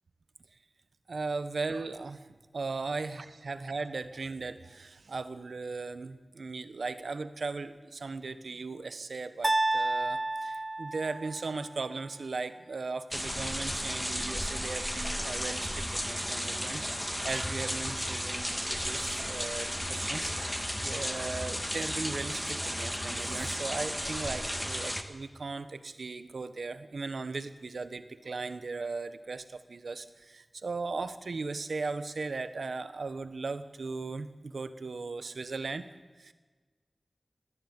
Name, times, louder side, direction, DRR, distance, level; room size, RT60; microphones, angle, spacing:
voice 1, 1.1-2.3 2.5-35.9 36.2-36.3, right 3 dB, 85° right, 11 dB, 1.4 m, -37 dB
sound 1, 9.4-11.6, right 2 dB, 30° right, 0.8 m, -30 dB
sound 2, 13.1-25.0, equal, 5° left, 1.9 m, -34 dB
19.5 x 17.5 x 9.8 m, 1.3 s
wide cardioid pair, 75°, 0 cm